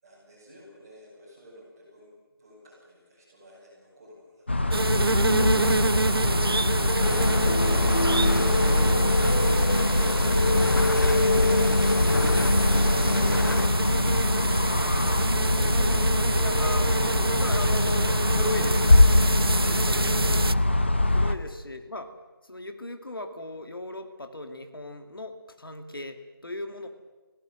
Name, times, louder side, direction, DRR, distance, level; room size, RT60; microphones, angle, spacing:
voice 1, 0.0-2.1 2.4-5.3 26.6-26.9, equal, 10° right, -8 dB, 6.9 m, -52 dB
sound 1, 4.5-21.3, left 2 dB, 30° left, 0.9 m, -23 dB
sound 2, 4.7-20.5, right 3 dB, 75° right, 0.8 m, -28 dB
sound 3, 7.0-13.7, left 3 dB, 55° left, 0.9 m, -27 dB
voice 2, 16.4-16.9 17.2-19.0 19.3-19.9 21.1-22.1 22.4-26.9, left 2 dB, 70° left, 6 dB, 2.6 m, -37 dB
30.0 x 18.0 x 7.9 m, 1.3 s
figure-of-eight pair, 180°, 12 cm